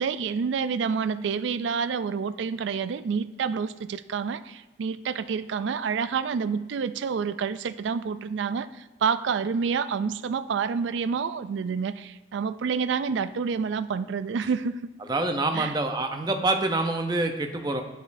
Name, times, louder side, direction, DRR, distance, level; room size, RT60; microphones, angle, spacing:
voice 1, 0.0-14.9 15.5-15.8, right 6 dB, 70° right, 13 dB, 0.3 m, -28 dB
voice 2, 15.1-17.8, right 2 dB, 20° right, 5 dB, 0.6 m, -26 dB
10.5 x 5.1 x 2.6 m, 1.1 s
head